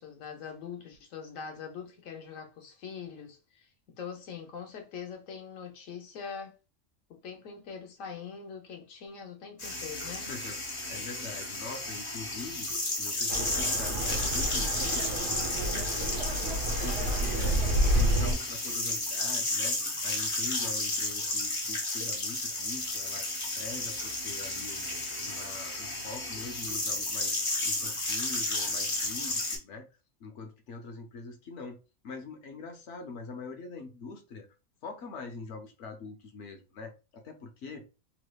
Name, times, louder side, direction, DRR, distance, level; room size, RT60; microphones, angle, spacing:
voice 1, 0.0-6.5 7.1-10.3, left 6 dB, 90° left, 1.2 m, -43 dB
sound 1, 9.6-29.6, left 2 dB, 30° left, 0.7 m, -33 dB
voice 2, 10.2-12.7 13.0-17.6 17.9-23.3 23.5-24.9 25.2-29.9 30.2-31.8 32.0-34.5 34.8-37.9, left 4 dB, 70° left, 1.0 m, -43 dB
sound 2, 13.3-18.3, right 1 dB, 75° right, 1.2 m, -29 dB
3.2 x 3.1 x 2.2 m
omnidirectional pair, 1.3 m